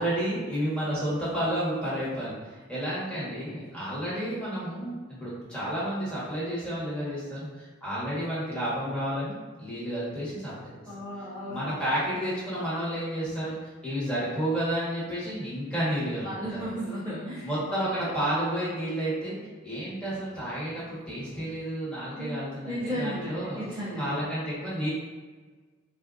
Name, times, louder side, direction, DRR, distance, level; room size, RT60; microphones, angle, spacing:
voice 1, 0.0-10.8 11.5-13.6 13.8-16.6 17.4-19.4 19.6-23.6 24.0-24.9, right 1 dB, 5° left, -10 dB, 1.3 m, -31 dB
voice 2, 10.9-11.7 16.2-18.1 22.2-22.3 22.6-24.2, equal, 15° right, -13 dB, 0.9 m, -35 dB
4.0 x 2.5 x 2.5 m, 1.4 s
head